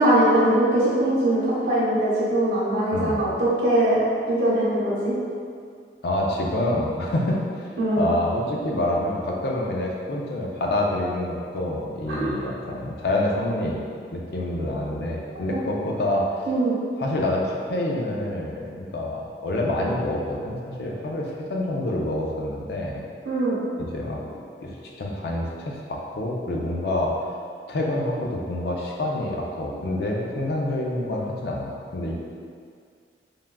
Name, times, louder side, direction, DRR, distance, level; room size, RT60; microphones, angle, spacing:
voice 1, 0.0-4.0 4.3-5.1 7.8-8.1 12.1-12.2 15.5-15.6 16.5-16.8 23.2-23.6, right 1 dB, 85° right, -9 dB, 1.0 m, -21 dB
voice 2, 2.9-3.2 6.0-7.4 8.0-13.8 14.1-16.3 17.0-23.0 23.8-24.2 24.6-27.1 27.7-32.1, left 1 dB, 60° left, -2 dB, 0.4 m, -27 dB
3.4 x 2.2 x 2.2 m, 2.2 s
head